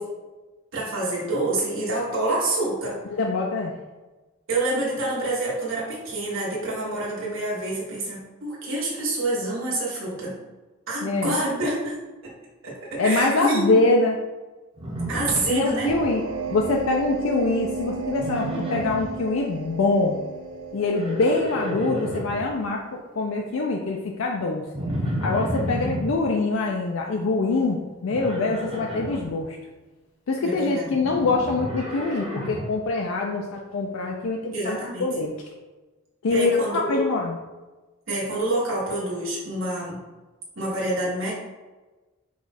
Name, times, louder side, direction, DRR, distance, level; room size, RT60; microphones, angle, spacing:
voice 1, 0.7-3.0 4.5-10.4 10.9-12.0 12.2-12.3 12.6-13.7 15.1-15.9 30.4-31.1 34.5-35.1 36.3-37.0 38.1-40.0 40.5-41.3, right 2 dB, 70° right, -6 dB, 1.3 m, -27 dB
voice 2, 3.1-3.7 11.0-11.3 13.0-14.1 15.5-16.2 16.5-20.2 20.7-22.8 23.2-24.6 25.2-27.8 28.0-29.5 30.3-35.3 36.2-37.3, left 3 dB, 70° left, 0 dB, 0.4 m, -24 dB
Livestock farm animals working animals, 14.8-16.0 16.3-16.8 18.1-19.1 20.7-22.4 24.7-26.1 28.1-29.2 31.0-32.7, equal, 25° right, 0.8 m, -31 dB
sound 1, 15.8-22.4, right 4 dB, 90° right, 0.6 m, -34 dB
4.9 x 2.4 x 4.1 m, 1.2 s
head